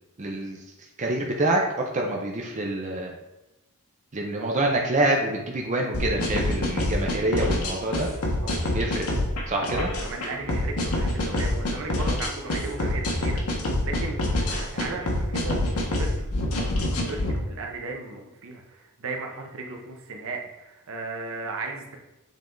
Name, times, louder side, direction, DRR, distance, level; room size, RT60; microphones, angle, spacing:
voice 1, 0.2-0.6 1.0-3.1 4.1-8.1 8.7-9.1 9.5-9.9, right 1 dB, 35° right, 0 dB, 0.7 m, -26 dB
sound 1, 5.9-17.3, left 1 dB, 75° left, 1.3 m, -26 dB
voice 2, 9.7-14.2 14.5-16.3 16.6-22.0, right 3 dB, 65° right, 2 dB, 0.9 m, -36 dB
7.3 x 3.5 x 3.8 m, 0.95 s
head